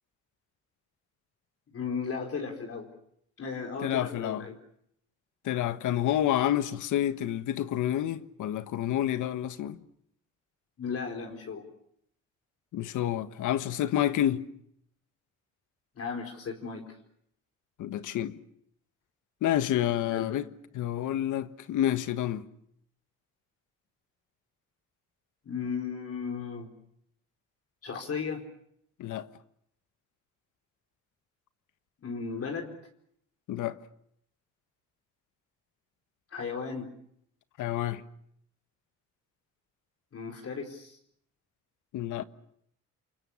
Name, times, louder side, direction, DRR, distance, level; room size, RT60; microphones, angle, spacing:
voice 1, 1.7-2.9 3.4-4.6 10.8-11.7 16.0-16.9 20.1-20.4 25.4-26.7 27.8-28.4 32.0-32.7 36.3-36.9 40.1-41.0, left 5 dB, 50° left, 4.3 m, -35 dB
voice 2, 3.8-4.4 5.4-9.8 12.7-14.4 17.8-18.4 19.4-20.4 20.7-22.4 29.0-29.3 33.5-33.8 37.6-38.0 41.9-42.2, left 12 dB, 80° left, 1.4 m, -29 dB
28.5 x 24.0 x 7.1 m
cardioid pair, 90°, 30 cm